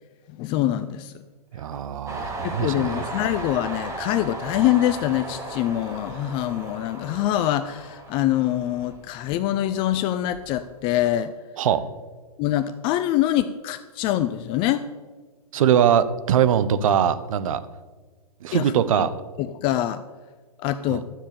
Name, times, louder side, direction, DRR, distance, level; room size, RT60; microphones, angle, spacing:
voice 1, 0.3-1.1 2.4-11.3 12.4-14.9 18.5-18.7 19.4-20.0 20.6-21.1, left 13 dB, 25° left, 11 dB, 0.4 m, -24 dB
voice 2, 1.5-3.1 11.6-11.8 15.5-17.6 18.4-19.1 20.9-21.0, right 9 dB, 55° right, 13 dB, 0.9 m, -21 dB
Train, 2.1-9.5 9.9-10.7, right 2 dB, 15° right, 2.0 m, -36 dB
12.5 x 7.3 x 6.8 m, 1.4 s
hypercardioid pair, 120°, 20 cm